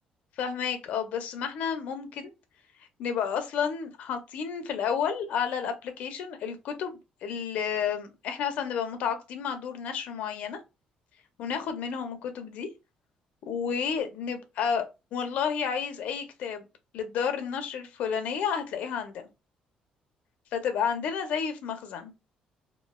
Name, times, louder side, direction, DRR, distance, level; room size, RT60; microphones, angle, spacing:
voice 1, 0.4-2.3 3.0-10.6 11.4-12.7 13.4-14.9 15.1-16.7 16.9-19.3 20.5-22.1, left 7 dB, 65° left, 0.6 m, -31 dB
3.0 x 2.3 x 2.3 m
cardioid pair, 160°, 3 cm